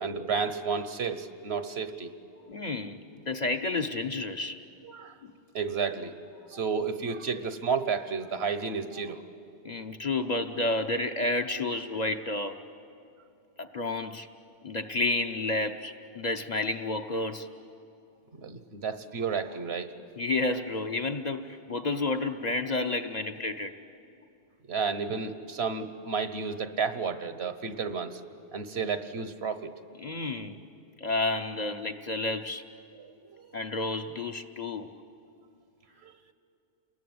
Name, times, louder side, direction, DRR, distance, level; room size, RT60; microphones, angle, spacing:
voice 1, 0.0-2.1 4.8-5.1 5.5-6.2 6.5-9.2 18.3-19.9 24.7-28.2 28.5-29.7 33.0-33.6 36.0-36.3, right 5 dB, 65° right, 11 dB, 1.4 m, -32 dB
voice 2, 2.5-4.6 9.6-12.6 13.6-14.3 14.6-17.5 20.2-23.7 30.0-30.6 31.0-32.6 33.5-34.9, left 2 dB, 40° left, 5 dB, 1.0 m, -30 dB
29.0 x 21.0 x 9.5 m, 2.6 s
omnidirectional pair, 1.1 m